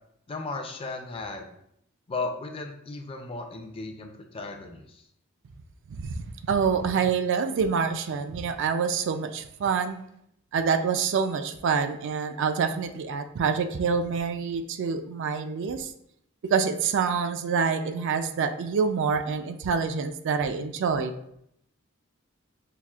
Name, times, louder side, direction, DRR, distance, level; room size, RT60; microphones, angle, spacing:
voice 1, 0.3-1.5 2.1-5.1, left 3 dB, 25° left, 4 dB, 0.4 m, -35 dB
voice 2, 5.9-10.0 10.5-15.9 16.5-21.1, right 6 dB, 60° right, 9 dB, 0.3 m, -26 dB
5.7 x 2.4 x 2.3 m, 0.74 s
head